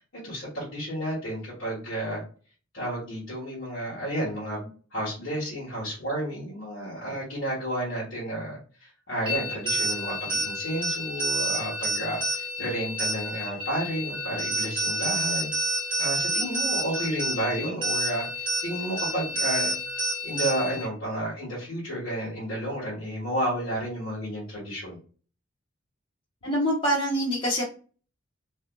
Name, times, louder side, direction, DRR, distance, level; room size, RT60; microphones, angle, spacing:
voice 1, 0.1-2.2 2.7-15.5 16.0-19.7 20.2-25.0, right 1 dB, 65° left, -9 dB, 1.4 m, -31 dB
sound 1, 9.3-20.9, right 1 dB, 25° right, 1.0 m, -29 dB
voice 2, 26.4-27.6, equal, 25° left, -7 dB, 0.9 m, -25 dB
3.3 x 2.7 x 2.2 m, 0.39 s
head